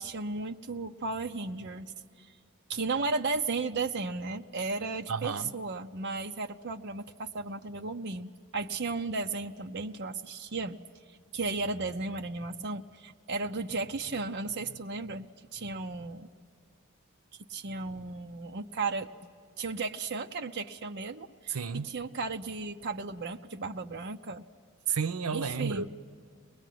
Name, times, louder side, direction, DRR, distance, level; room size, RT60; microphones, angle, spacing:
voice 1, 0.0-2.3 2.7-10.8 11.3-15.3 15.5-16.3 17.5-19.3 19.6-21.6 21.8-24.4 25.3-25.8, right 3 dB, 50° right, 0.6 m, -35 dB
voice 2, 5.1-5.5 21.5-21.9 24.9-26.0, right 6 dB, 85° right, 0.7 m, -32 dB
24.0 x 20.0 x 9.2 m
head